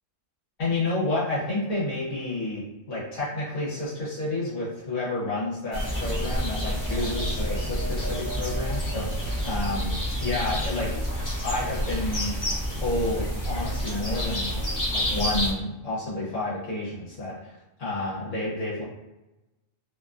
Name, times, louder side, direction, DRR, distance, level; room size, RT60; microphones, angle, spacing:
voice 1, 0.6-11.0 11.4-12.4 12.7-14.5 14.9-17.5 17.8-18.8, left 2 dB, 75° left, -7 dB, 1.3 m, -30 dB
sound 1, 5.7-15.5, equal, 25° left, 0.5 m, -28 dB
2.8 x 2.2 x 2.4 m, 1.0 s
omnidirectional pair, 1.3 m